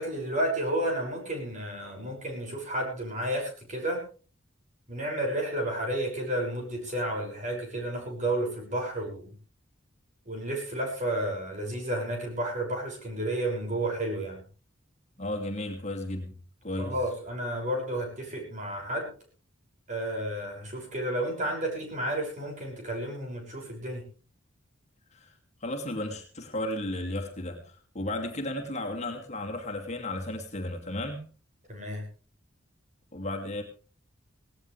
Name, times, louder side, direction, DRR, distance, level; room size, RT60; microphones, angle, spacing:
voice 1, 0.0-4.0 4.9-9.3 10.2-14.4 16.8-19.1 19.9-24.0 31.7-32.1, right 1 dB, 40° right, 1 dB, 6.4 m, -31 dB
voice 2, 15.2-16.4 16.6-16.9 25.1-25.3 25.6-31.2 33.1-33.6, left 1 dB, 35° left, 2 dB, 2.6 m, -34 dB
18.0 x 17.5 x 3.4 m, 0.37 s
head